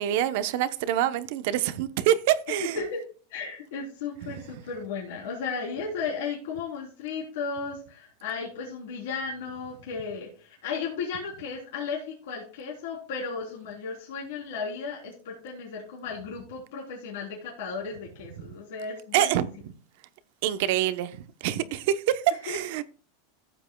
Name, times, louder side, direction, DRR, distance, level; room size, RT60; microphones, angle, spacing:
voice 1, 0.0-2.8 19.1-19.5 20.4-22.8, right 12 dB, 65° right, 0.9 m, -26 dB
voice 2, 3.3-19.4 22.5-22.6, left 5 dB, 75° left, 3.6 m, -35 dB
14.5 x 7.9 x 2.3 m
supercardioid pair, 130°, 0 cm